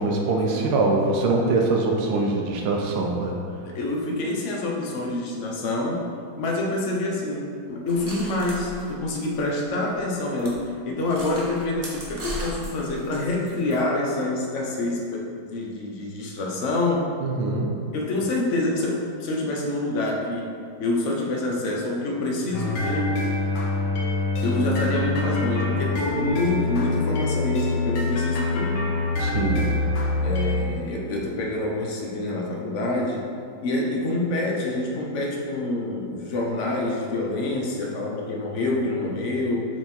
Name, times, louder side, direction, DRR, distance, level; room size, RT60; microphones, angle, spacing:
voice 1, 0.0-3.4 17.2-17.7 29.2-29.7, right 3 dB, 90° right, 0 dB, 1.7 m, -23 dB
voice 2, 3.6-17.1 17.9-23.1 24.4-28.7 29.4-29.7 30.2-33.3 33.6-39.7, left 2 dB, 50° left, -1 dB, 0.9 m, -27 dB
sound 1, 7.9-9.7 10.0-10.1 10.4-10.6 11.0-13.8, right 1 dB, 35° right, 1.1 m, -37 dB
sound 2, 22.5-30.6, left 2 dB, 75° left, 1.6 m, -25 dB
7.5 x 3.7 x 4.5 m, 2.3 s
omnidirectional pair, 2.3 m